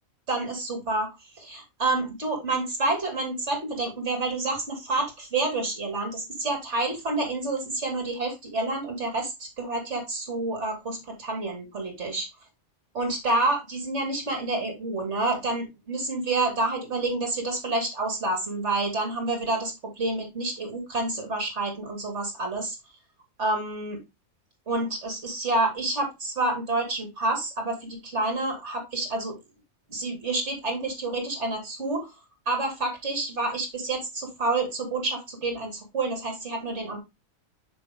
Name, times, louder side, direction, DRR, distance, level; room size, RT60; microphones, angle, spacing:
voice 1, 0.3-1.1 1.4-12.3 12.9-22.8 23.4-24.0 24.7-29.4 29.9-32.1 32.5-37.0, right 2 dB, 55° right, 2 dB, 3.0 m, -28 dB
6.8 x 6.0 x 3.6 m, 0.24 s
omnidirectional pair, 1.5 m